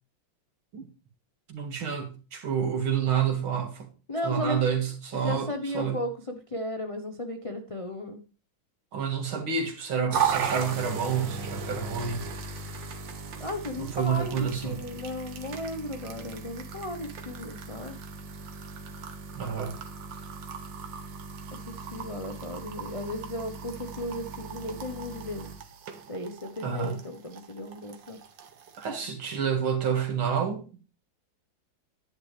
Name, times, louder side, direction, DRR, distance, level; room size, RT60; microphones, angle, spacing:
voice 1, 1.5-3.9 4.2-6.0 8.9-12.3 12.5-12.7 13.8-14.8 19.4-19.7 26.6-27.0 28.8-30.8, right 7 dB, 85° right, 2.8 m, -29 dB
voice 2, 4.1-4.6 5.2-8.2 13.4-18.0 21.5-25.5 26.1-28.2, left 1 dB, 50° left, 0.3 m, -35 dB
sound 1, 10.1-28.9, right 6 dB, 65° right, 1.8 m, -37 dB
10.5 x 10.0 x 3.2 m
omnidirectional pair, 2.2 m